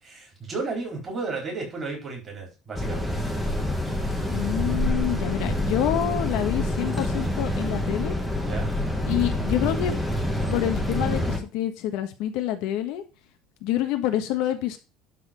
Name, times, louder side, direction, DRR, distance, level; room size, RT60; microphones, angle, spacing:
voice 1, 0.0-3.2 8.4-8.7, right 3 dB, 20° right, -1 dB, 4.1 m, -33 dB
sound 1, 2.8-11.4, left 1 dB, ahead, 1.4 m, -27 dB
voice 2, 4.3-8.1 9.1-9.9 10.5-13.0 13.6-14.8, left 12 dB, 60° left, 7 dB, 1.3 m, -27 dB
12.0 x 4.3 x 5.2 m, 0.30 s
cardioid pair, 175°, 0 cm